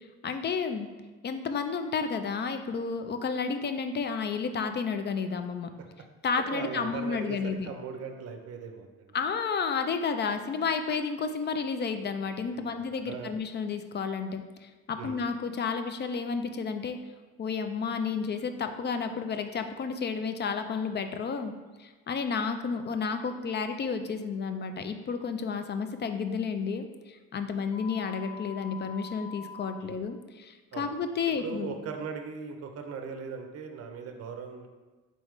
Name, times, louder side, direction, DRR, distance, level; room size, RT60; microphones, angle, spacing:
voice 1, 0.2-0.9 1.2-5.7 6.2-7.7 9.1-17.0 17.4-21.5 21.8-31.7, left 5 dB, 35° left, 8 dB, 0.4 m, -31 dB
voice 2, 6.5-9.2 12.5-13.3 15.0-15.2 29.8-30.0 30.7-30.9 31.4-34.7, right 5 dB, 55° right, 5 dB, 0.6 m, -39 dB
sound 1, 27.7-29.7, left 6 dB, 80° left, 1.4 m, -44 dB
4.0 x 3.6 x 3.1 m, 1.3 s
cardioid pair, 90°, 30 cm